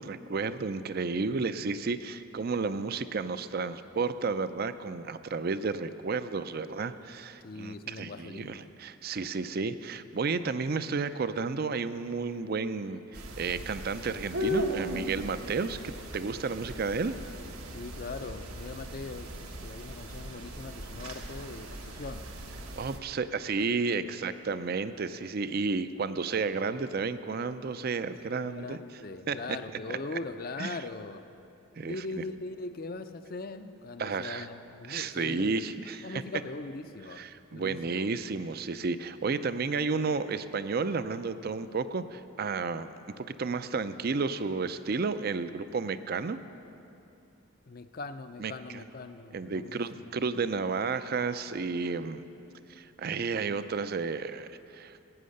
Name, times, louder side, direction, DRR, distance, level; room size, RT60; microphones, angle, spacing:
voice 1, 0.0-15.8 16.1-17.1 22.8-28.8 29.3-29.4 30.6-30.8 31.8-32.0 34.0-34.5 34.9-36.2 37.1-42.9 43.2-46.4 48.4-48.8 49.3-52.2 52.7-55.0, right 4 dB, 45° right, 13 dB, 0.4 m, -32 dB
voice 2, 7.4-8.7 17.7-22.3 24.1-24.2 26.5-26.8 28.2-31.2 31.8-35.5 36.0-37.2 37.5-38.1 47.7-50.1, left 3 dB, 40° left, 10 dB, 0.5 m, -41 dB
sound 1, 13.1-23.0, equal, 85° right, 1.3 m, -38 dB
16.5 x 9.3 x 6.5 m, 2.8 s
head